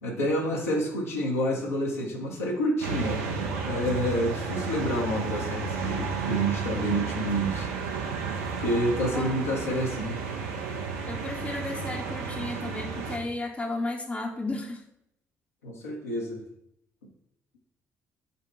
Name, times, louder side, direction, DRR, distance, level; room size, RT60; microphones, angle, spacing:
voice 1, 0.0-3.3 3.6-7.7 8.6-10.2 15.6-16.4, equal, 80° left, -3 dB, 0.7 m, -28 dB
sound 1, 2.8-13.2, right 4 dB, 75° right, 0.6 m, -32 dB
voice 2, 9.1-9.5 11.0-14.8, left 2 dB, 15° left, 1 dB, 0.6 m, -34 dB
5.2 x 2.1 x 4.4 m, 0.78 s
figure-of-eight pair, 45°, 8 cm